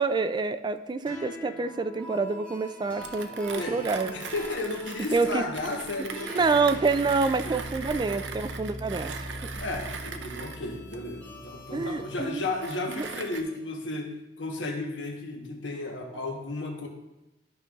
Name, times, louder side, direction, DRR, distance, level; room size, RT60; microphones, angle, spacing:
voice 1, 0.0-4.1 5.1-5.4 6.3-9.1 11.7-12.4 12.9-13.1, right 4 dB, 25° right, 10 dB, 0.3 m, -27 dB
sound 1, 1.1-13.6, left 1 dB, 10° left, 1.2 m, -42 dB
Mechanisms, 3.0-13.4, right 5 dB, 80° right, 0.6 m, -40 dB
voice 2, 3.5-6.4 7.4-7.5 9.6-16.9, left 2 dB, 80° left, 2 dB, 1.2 m, -34 dB
12.5 x 5.3 x 2.5 m, 0.97 s
head